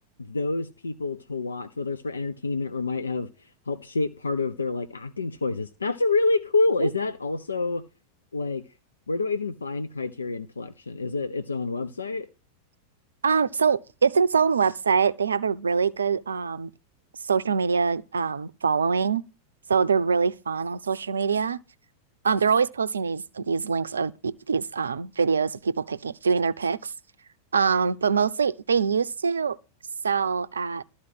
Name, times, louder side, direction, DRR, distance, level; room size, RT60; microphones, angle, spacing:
voice 1, 0.2-3.3 3.7-7.8 8.3-8.6 9.1-12.3, left 3 dB, 75° left, 0.5 m, -27 dB
voice 2, 13.2-16.7 17.3-19.2 19.7-21.6 22.2-26.9 27.5-29.6 30.0-30.8, right 5 dB, 70° right, 0.5 m, -24 dB
12.5 x 4.2 x 7.9 m
figure-of-eight pair, 90°, 0 cm